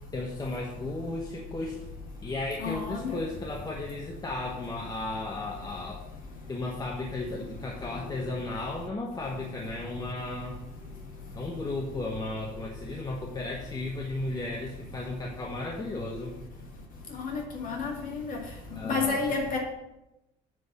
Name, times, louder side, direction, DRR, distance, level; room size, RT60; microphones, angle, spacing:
voice 1, 0.1-1.8 2.2-6.0 6.5-10.6 11.3-16.4 18.8-19.2, left 2 dB, 25° left, -1 dB, 1.1 m, -35 dB
voice 2, 2.6-3.2 17.1-18.4 18.8-19.6, left 4 dB, 55° left, 0 dB, 2.2 m, -30 dB
9.2 x 4.1 x 7.3 m, 0.91 s
cardioid pair, 110°, 17 cm